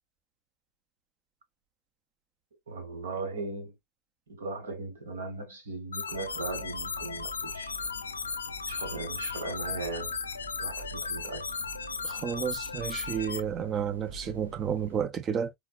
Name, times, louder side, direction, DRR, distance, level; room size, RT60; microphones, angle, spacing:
voice 1, 2.7-3.8 4.3-7.7 8.7-10.2 10.6-11.5, right 3 dB, 65° right, 1.2 m, -38 dB
sound 1, 5.9-13.4, left 5 dB, 70° left, 0.4 m, -36 dB
sound 2, 6.1-15.0, right 1 dB, 85° right, 0.8 m, -47 dB
voice 2, 12.0-15.5, right 8 dB, 25° right, 0.5 m, -31 dB
4.0 x 2.1 x 2.4 m
figure-of-eight pair, 90°, 0 cm